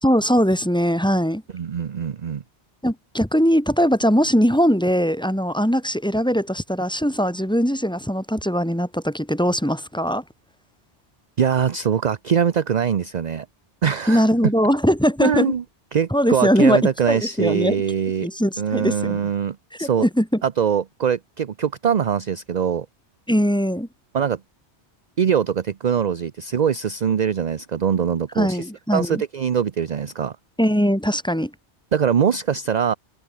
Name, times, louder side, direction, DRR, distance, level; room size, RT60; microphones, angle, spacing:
voice 1, 0.0-1.4 2.8-10.2 14.1-15.5 16.1-16.8 17.1-17.8 18.2-19.2 19.8-20.4 23.3-23.9 28.4-29.2 30.6-31.5, equal, 5° left, 2.7 m, -20 dB
voice 2, 1.5-2.4 11.4-13.5 13.8-14.2 15.2-15.6 15.9-18.3 18.6-20.1 20.4-22.9 24.1-24.4 25.2-28.7 28.9-30.4 31.9-32.9, right 8 dB, 45° right, 0.7 m, -22 dB
omnidirectional pair, 1.2 m